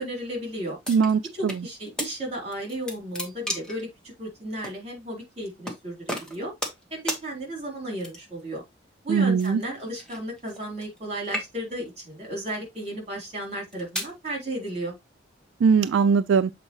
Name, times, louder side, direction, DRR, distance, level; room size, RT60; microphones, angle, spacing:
voice 1, 0.0-0.8 1.3-6.5 6.9-8.6 9.0-14.9, right 1 dB, 35° right, 3.7 m, -34 dB
sound 1, 0.8-1.6 2.0-2.1 2.5-3.8 4.6-4.8 5.6-5.8 6.1-6.8 7.1-7.2 8.0-8.4 9.4-11.0 11.2-11.8 12.5-12.8 13.5-14.1, equal, 5° left, 1.5 m, -33 dB
voice 2, 0.9-1.5 9.1-9.6 15.6-16.5, right 5 dB, 75° right, 0.3 m, -20 dB
7.5 x 4.4 x 3.1 m
head